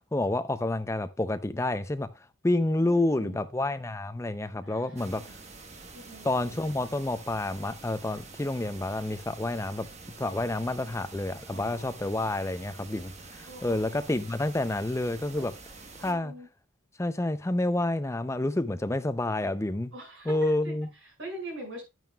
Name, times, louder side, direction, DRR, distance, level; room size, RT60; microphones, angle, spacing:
voice 1, 0.0-2.1 2.4-5.4 6.2-9.9 10.2-15.5 16.0-16.3 17.0-19.9 20.3-20.9, left 2 dB, 15° left, 0.4 m, -29 dB
voice 2, 2.8-3.4 4.6-5.3 5.9-6.8 11.5-11.8 13.5-14.0 15.4-15.5 16.0-16.5 19.9-20.7 21.0-21.8, right 1 dB, 65° right, 5.8 m, -43 dB
sound 1, 5.0-16.1, right 3 dB, 35° right, 1.1 m, -47 dB
10.5 x 9.2 x 2.3 m
head